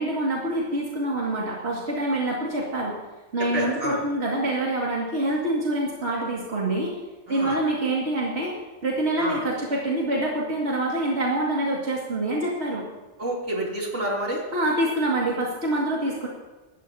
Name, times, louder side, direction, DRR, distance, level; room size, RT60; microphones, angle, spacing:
voice 1, 0.0-2.9 3.3-7.0 7.3-8.5 8.8-12.8 14.5-16.3, right 1 dB, 65° right, -4 dB, 2.6 m, -26 dB
voice 2, 3.5-4.0 7.3-7.6 9.2-9.4 13.2-14.4, right 1 dB, 85° right, -3 dB, 3.5 m, -28 dB
25.5 x 13.5 x 2.9 m, 1.2 s
omnidirectional pair, 1.2 m